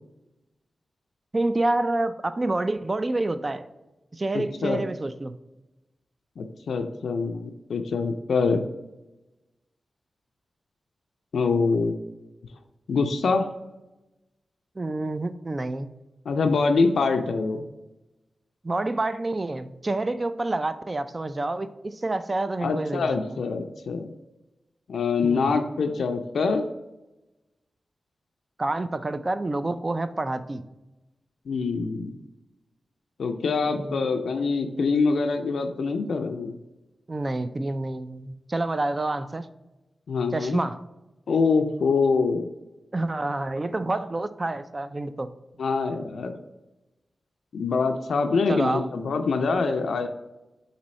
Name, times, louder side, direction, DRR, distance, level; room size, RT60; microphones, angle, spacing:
voice 1, 1.3-3.7 4.1-5.3 14.8-15.9 18.6-23.4 25.2-25.6 28.6-30.6 33.5-34.1 37.1-39.5 40.3-40.8 42.9-45.3 48.5-48.9, right 2 dB, 35° right, 11 dB, 0.3 m, -28 dB
voice 2, 4.3-4.8 6.4-8.7 11.3-12.0 12.9-13.5 16.3-17.6 22.6-24.1 24.9-26.6 31.5-32.1 33.2-36.5 40.1-40.6 41.3-42.5 45.6-46.3 47.5-50.1, left 4 dB, 85° left, 6 dB, 0.3 m, -24 dB
4.1 x 2.7 x 4.1 m, 1.0 s
cardioid pair, 50°, 0 cm